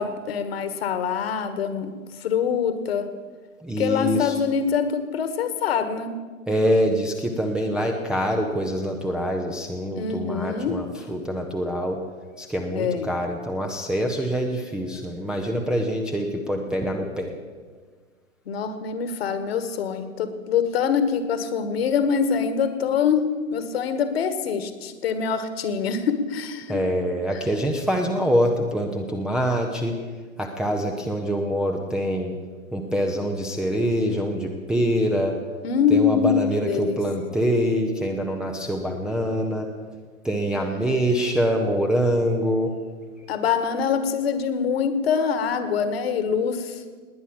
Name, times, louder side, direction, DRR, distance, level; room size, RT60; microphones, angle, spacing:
voice 1, 0.0-1.9 2.2-3.1 3.8-6.1 10.0-10.8 12.7-13.1 18.5-23.2 23.5-26.8 35.6-37.0 43.3-46.8, left 7 dB, 50° left, 10 dB, 1.7 m, -24 dB
voice 2, 3.6-4.4 6.5-12.0 12.4-17.3 26.7-30.0 30.4-32.3 32.7-35.4 35.9-39.7 40.2-42.7, equal, ahead, 0 dB, 0.6 m, -25 dB
19.5 x 9.6 x 7.3 m, 1.5 s
figure-of-eight pair, 110°, 40 cm